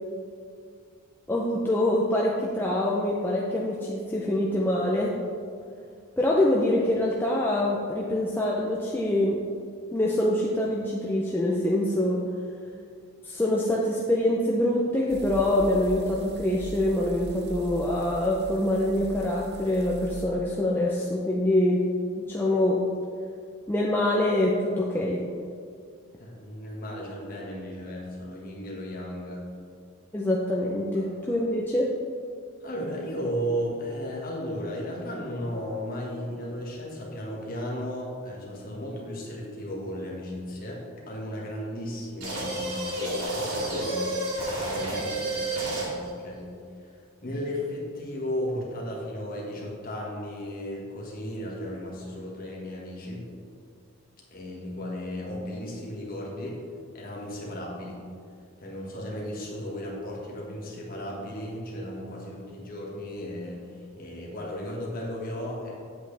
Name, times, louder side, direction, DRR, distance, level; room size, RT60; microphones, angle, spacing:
voice 1, 1.3-5.2 6.2-9.4 9.9-12.2 13.2-21.8 22.2-22.8 23.7-25.2 30.1-31.9, left 1 dB, 10° left, -4 dB, 0.5 m, -25 dB
sound 1, 15.1-20.2, right 2 dB, 45° right, 0.7 m, -41 dB
voice 2, 26.2-29.4 32.6-43.0 43.3-44.0 44.4-46.5 47.2-53.3 54.3-56.6 56.9-58.0 58.6-65.7, equal, 40° left, -3 dB, 1.6 m, -35 dB
sound 2, 42.2-46.1, right 1 dB, 90° right, 2.2 m, -30 dB
8.1 x 7.9 x 3.3 m, 2.2 s
head